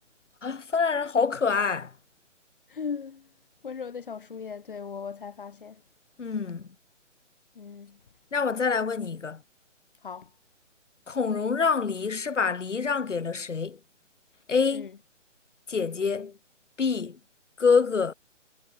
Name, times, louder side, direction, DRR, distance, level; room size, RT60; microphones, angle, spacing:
voice 1, 0.4-1.9 6.2-6.7 8.3-9.4 11.1-13.8 14.5-14.9 15.7-16.4 16.8-17.2 17.6-18.1, left 5 dB, 70° left, 2.4 m, -26 dB
voice 2, 2.7-3.3 3.6-5.8 7.6-8.0 10.0-10.3 14.7-14.9, left 6 dB, 45° left, 5.3 m, -38 dB
hypercardioid pair, 175°, 38 cm